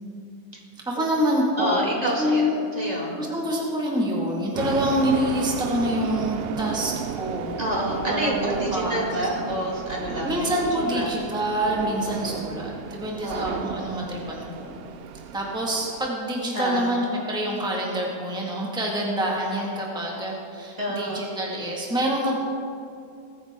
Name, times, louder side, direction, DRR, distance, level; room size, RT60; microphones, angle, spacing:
voice 1, 0.9-7.6 8.1-9.0 10.2-14.8 15.3-22.4, equal, 5° right, -3 dB, 1.8 m, -26 dB
voice 2, 1.6-3.1 7.6-10.3 10.8-11.1 13.2-13.6 16.5-16.9 20.8-21.2, equal, 25° right, -3 dB, 2.5 m, -28 dB
sound 1, 4.5-16.1, right 8 dB, 65° right, 0.6 m, -33 dB
22.5 x 9.6 x 3.7 m, 2.6 s
omnidirectional pair, 1.5 m